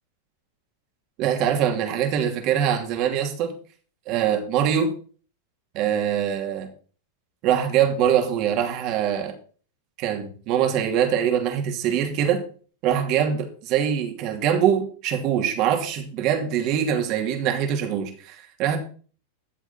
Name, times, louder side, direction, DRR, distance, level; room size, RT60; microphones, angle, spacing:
voice 1, 1.2-3.5 4.1-4.9 5.7-6.7 7.4-9.3 10.0-12.4 12.8-18.8, right 9 dB, 50° right, 2.8 m, -23 dB
13.0 x 7.4 x 4.4 m
hypercardioid pair, 105°, 0 cm